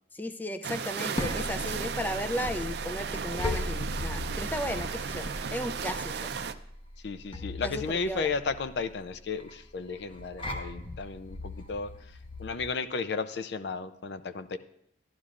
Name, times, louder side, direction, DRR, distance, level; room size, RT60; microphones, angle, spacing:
voice 1, 0.1-6.3 7.6-8.3, left 1 dB, 10° left, 10 dB, 0.3 m, -35 dB
sound 1, 0.6-6.5, right 6 dB, 65° right, 0.5 m, -35 dB
sound 2, 0.8-12.7, left 1 dB, 30° left, 0.9 m, -38 dB
voice 2, 7.0-11.9 12.4-14.6, left 4 dB, 70° left, 12 dB, 0.5 m, -34 dB
12.0 x 11.5 x 2.5 m, 0.75 s
head